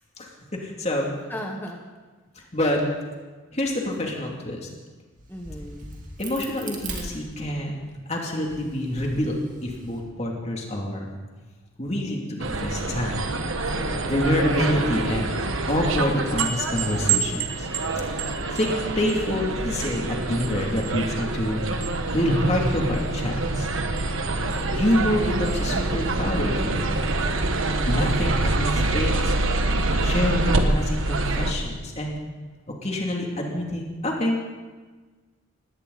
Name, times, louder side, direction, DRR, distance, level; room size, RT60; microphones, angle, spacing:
voice 1, 0.2-1.1 2.5-2.8 3.5-4.7 6.2-7.8 8.1-11.1 11.8-13.2 13.7-13.8 14.1-15.3 15.7-17.7 18.5-21.6 22.1-23.7 24.7-26.9 27.8-29.3 30.0-32.2 32.8-34.4, left 1 dB, 30° left, -1 dB, 2.7 m, -26 dB
voice 2, 1.3-1.9 5.3-6.0 13.7-14.1, equal, 10° left, 1 dB, 1.2 m, -36 dB
Crack, 5.2-7.8 8.3-10.0, right 3 dB, 40° right, 2.6 m, -40 dB
sound 1, 12.4-31.5, right 2 dB, 75° right, 1.4 m, -25 dB
20.0 x 17.0 x 4.1 m, 1.4 s
head